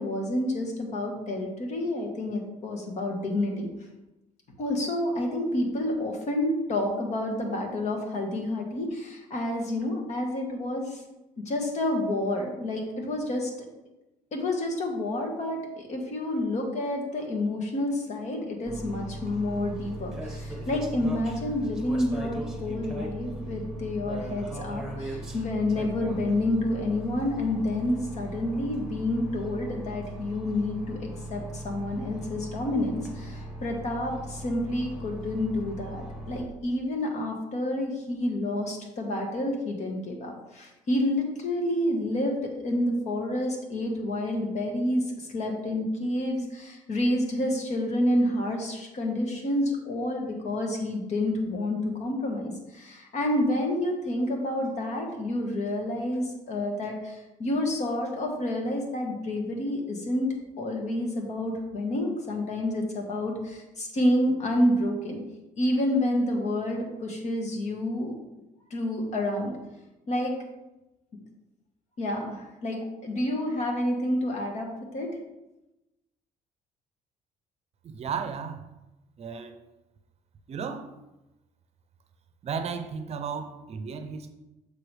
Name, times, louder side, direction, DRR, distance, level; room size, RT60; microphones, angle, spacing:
voice 1, 0.0-3.7 4.6-11.0 11.4-13.5 14.3-42.4 42.6-60.3 60.6-65.2 65.6-68.1 68.7-69.5 70.1-70.3 72.0-75.1, left 1 dB, 50° left, 1 dB, 1.6 m, -29 dB
sound 1, 18.7-36.4, right 1 dB, 5° right, 1.6 m, -38 dB
voice 2, 77.8-78.6 79.2-79.5 80.5-80.9 82.4-84.3, right 6 dB, 45° right, 9 dB, 0.6 m, -34 dB
6.8 x 6.0 x 3.4 m, 0.97 s
cardioid pair, 110°, 15 cm